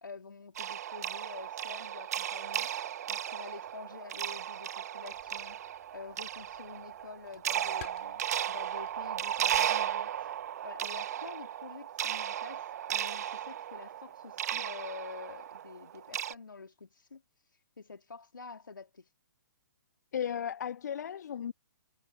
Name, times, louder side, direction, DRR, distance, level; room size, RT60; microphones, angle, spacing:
voice 1, 0.0-2.7 3.1-10.3 10.6-17.2 17.8-19.1, left 4 dB, 80° left, 2.9 m, -48 dB
sound 1, 0.6-16.3, right 10 dB, 55° right, 1.0 m, -35 dB
sound 2, 5.1-10.5, left 15 dB, 45° left, 5.9 m, -57 dB
voice 2, 20.1-21.5, left 8 dB, 60° left, 0.6 m, -35 dB
figure-of-eight pair, 130°, 11 cm